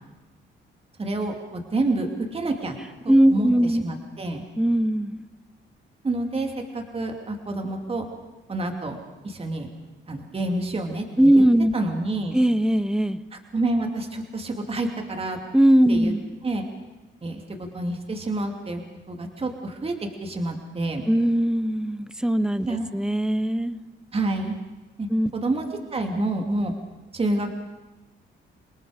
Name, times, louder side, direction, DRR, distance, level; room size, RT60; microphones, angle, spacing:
voice 1, 1.0-2.8 3.0-4.4 6.0-8.1 8.5-9.0 9.2-9.7 10.1-11.4 11.7-12.4 13.3-15.4 15.9-16.1 16.4-16.6 17.2-18.8 19.1-21.0 22.7-22.9 24.1-24.5 25.0-25.6 25.9-26.7 27.1-27.5, right 2 dB, 30° right, 3 dB, 2.7 m, -28 dB
voice 2, 3.1-3.8 4.6-5.2 11.2-11.7 12.3-13.2 15.5-16.2 21.1-22.7 22.9-23.8 25.1-25.3, right 1 dB, 5° right, 14 dB, 0.8 m, -19 dB
28.5 x 19.0 x 5.1 m, 1.1 s
cardioid pair, 90°, 20 cm